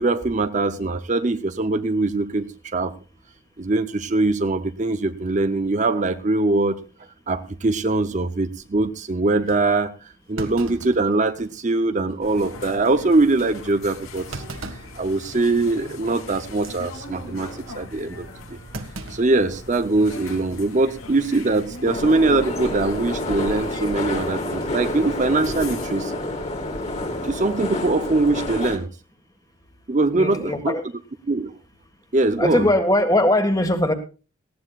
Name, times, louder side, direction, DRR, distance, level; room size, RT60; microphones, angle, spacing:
voice 1, 0.0-2.9 3.6-6.8 7.3-18.3 18.7-26.2 27.2-28.9 29.9-30.7 31.3-31.5 32.1-32.7, right 2 dB, 35° right, 10 dB, 0.6 m, -22 dB
Thump thud, 9.5-9.6 10.4-11.7 12.1-12.2 12.7-12.9 14.3-15.0 15.4-15.7 16.5-16.8 18.7-19.9 20.3-20.4 21.5-21.8, right 2 dB, 75° right, 1.7 m, -37 dB
sound 1, 12.2-25.9, left 2 dB, 90° left, 2.9 m, -39 dB
sound 2, 21.8-28.8, left 1 dB, 35° left, 2.6 m, -28 dB
voice 2, 30.1-30.8 32.4-33.9, left 1 dB, 15° left, 7 dB, 1.6 m, -20 dB
19.0 x 15.5 x 2.4 m, 0.33 s
head